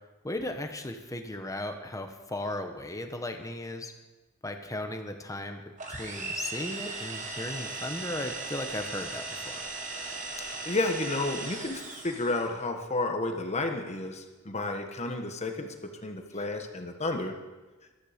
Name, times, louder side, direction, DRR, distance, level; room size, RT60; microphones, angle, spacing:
voice 1, 0.2-3.9 4.4-5.6 5.9-9.6 16.3-16.4, left 1 dB, 15° left, 6 dB, 1.1 m, -36 dB
sound 1, 5.8-12.5, right 3 dB, 40° right, 1.7 m, -38 dB
voice 2, 10.4-17.3, left 2 dB, 35° left, 5 dB, 1.4 m, -32 dB
13.5 x 13.0 x 5.1 m, 1.2 s
head